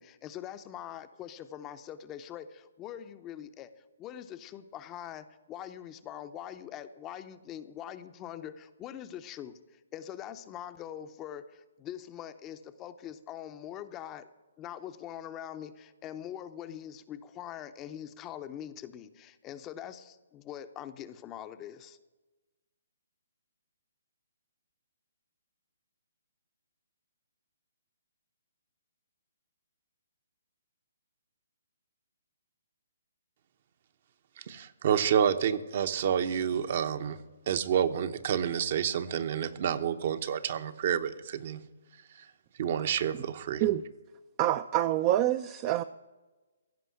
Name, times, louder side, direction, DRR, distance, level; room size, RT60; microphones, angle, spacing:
voice 1, 0.0-14.3 14.6-22.0, left 10 dB, 20° left, 10 dB, 0.6 m, -43 dB
voice 2, 34.4-37.2 37.5-41.6 42.1-42.3 42.6-43.6, right 8 dB, 50° right, 10 dB, 0.9 m, -29 dB
voice 3, 44.4-45.8, right 13 dB, 30° right, 12 dB, 0.4 m, -26 dB
15.5 x 5.5 x 9.6 m, 1.2 s
hypercardioid pair, 150°, 0 cm